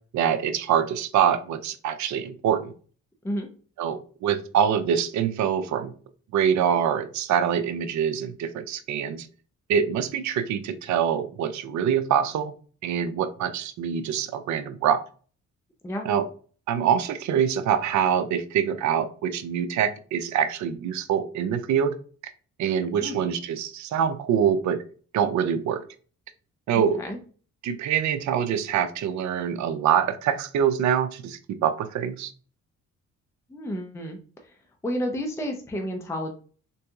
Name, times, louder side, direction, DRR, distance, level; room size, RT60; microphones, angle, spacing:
voice 1, 0.1-2.7 3.8-5.9 6.3-9.3 9.7-12.5 12.8-15.0 16.0-16.3 16.7-21.9 22.6-24.8 25.1-25.8 26.7-27.0 27.6-32.3, right 8 dB, 70° right, 10 dB, 0.5 m, -25 dB
voice 2, 23.0-23.3 26.7-27.2 33.5-34.2 34.8-36.3, equal, 10° left, 3 dB, 0.5 m, -31 dB
3.7 x 2.7 x 2.3 m, 0.41 s
cardioid pair, 90°, 30 cm